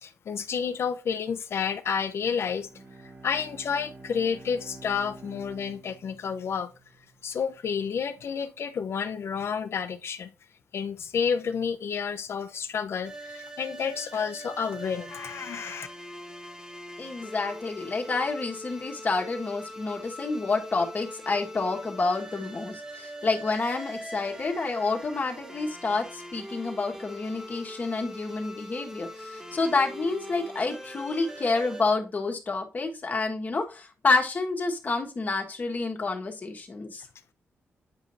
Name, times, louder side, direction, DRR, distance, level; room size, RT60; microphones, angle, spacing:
voice 1, 0.0-2.7 3.2-6.7 7.2-10.3 10.7-15.9, left 6 dB, 65° left, 0.8 m, -30 dB
Bowed string instrument, 2.3-7.1, right 3 dB, 40° right, 1.5 m, -48 dB
sound 1, 13.0-31.8, equal, 10° right, 1.0 m, -42 dB
voice 2, 17.0-37.1, left 3 dB, 35° left, 1.6 m, -29 dB
9.1 x 5.1 x 2.7 m
cardioid pair, 115°, 5 cm